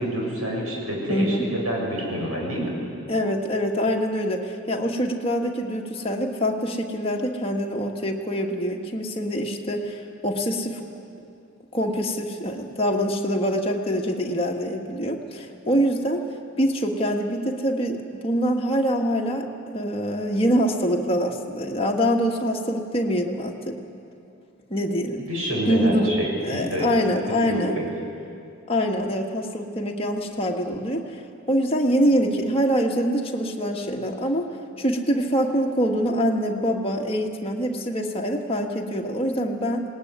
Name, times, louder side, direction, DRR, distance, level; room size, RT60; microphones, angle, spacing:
voice 1, 0.0-2.7 25.3-26.9 27.5-27.6, right 1 dB, 85° right, -2 dB, 7.0 m, -27 dB
voice 2, 1.1-1.5 3.1-10.8 11.7-16.2 16.6-23.8 24.7-25.3 25.7-26.1 26.4-27.8 28.7-31.0 31.5-34.5 34.8-39.8, equal, 25° left, 1 dB, 1.6 m, -24 dB
20.0 x 18.5 x 9.5 m, 2.6 s
head